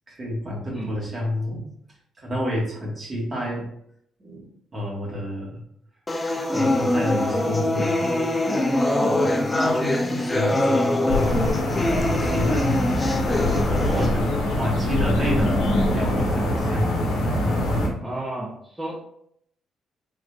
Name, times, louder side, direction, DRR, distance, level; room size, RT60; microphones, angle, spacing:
voice 1, 0.1-1.6 2.2-3.7 4.2-5.6 6.5-8.3 9.0-11.5 12.0-12.7 13.4-16.9 17.8-18.0, equal, 35° right, -3 dB, 1.4 m, -29 dB
sound 1, 6.1-14.1, left 1 dB, 20° left, 0.4 m, -23 dB
sound 2, 11.1-17.9, left 1 dB, 90° left, 0.7 m, -23 dB
voice 2, 13.8-14.1 18.0-19.0, right 1 dB, 15° right, -6 dB, 0.7 m, -31 dB
3.6 x 3.1 x 2.3 m, 0.70 s
cardioid pair, 90°, 0 cm